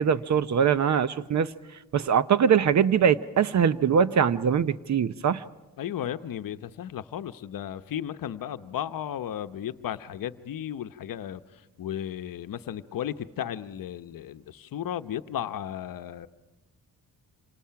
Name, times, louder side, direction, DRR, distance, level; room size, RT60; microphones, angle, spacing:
voice 1, 0.0-1.5 1.9-5.4, right 7 dB, 45° right, 15 dB, 0.7 m, -22 dB
voice 2, 5.8-11.4 11.8-16.3, left 10 dB, 60° left, 10 dB, 0.9 m, -34 dB
27.0 x 26.5 x 5.8 m, 1.1 s
cardioid pair, 120°, 37 cm